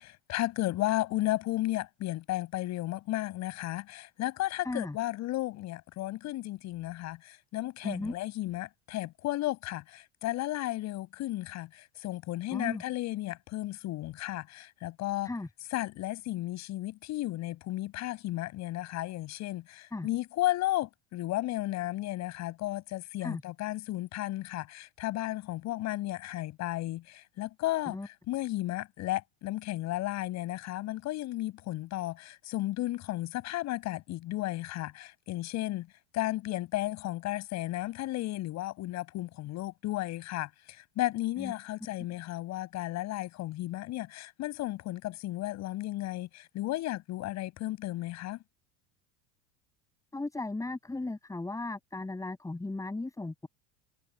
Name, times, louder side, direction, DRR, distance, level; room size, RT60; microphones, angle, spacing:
voice 1, 0.0-15.3 15.7-35.9 36.1-48.4, left 16 dB, 50° left, 6.6 m, -34 dB
voice 2, 4.6-4.9 7.8-8.1 12.5-12.8 15.2-15.5 19.9-20.1 23.2-23.4 27.8-28.1 41.4-41.5 50.1-53.5, left 2 dB, 10° left, 6.9 m, -36 dB
supercardioid pair, 125°, 34 cm